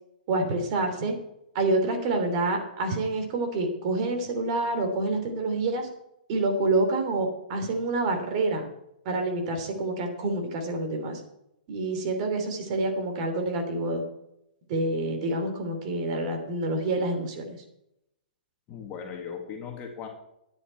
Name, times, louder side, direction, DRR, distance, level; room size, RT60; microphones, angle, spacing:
voice 1, 0.3-1.1 1.5-5.9 6.3-8.7 9.0-11.2 11.7-14.0 14.7-17.6, right 2 dB, 40° right, 4 dB, 3.1 m, -27 dB
voice 2, 18.7-20.1, left 7 dB, 25° left, 2 dB, 2.0 m, -38 dB
12.0 x 9.9 x 4.5 m, 0.81 s
hypercardioid pair, 145°, 5 cm